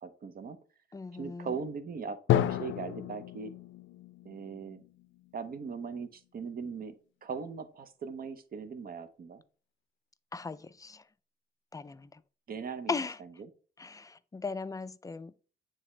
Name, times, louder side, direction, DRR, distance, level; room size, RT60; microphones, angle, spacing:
voice 1, 0.0-0.6 1.2-3.5 4.2-4.8 5.3-6.9 7.2-9.4 12.5-12.9 13.4-13.5, right 5 dB, 45° right, 0.8 m, -39 dB
voice 2, 0.9-1.5 10.3-11.0 11.7-12.2 12.9-13.2 13.8-15.3, left 4 dB, 15° left, 0.4 m, -38 dB
Drum, 2.3-6.0, left 12 dB, 75° left, 0.5 m, -32 dB
9.3 x 3.4 x 3.2 m
cardioid pair, 90°, 20 cm